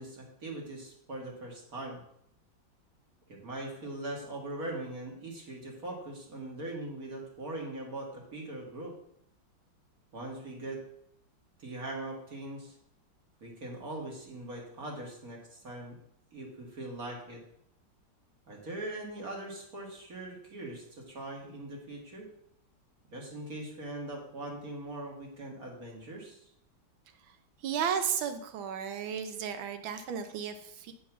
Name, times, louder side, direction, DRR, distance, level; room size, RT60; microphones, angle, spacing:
voice 1, 0.0-2.0 3.3-8.9 10.1-10.8 11.6-12.7 13.4-16.0 16.3-17.4 18.5-22.3 23.1-26.5, right 2 dB, 50° right, -1 dB, 2.1 m, -41 dB
voice 2, 27.2-30.9, right 7 dB, 80° right, 8 dB, 1.6 m, -34 dB
8.6 x 4.8 x 5.9 m, 0.72 s
omnidirectional pair, 2.1 m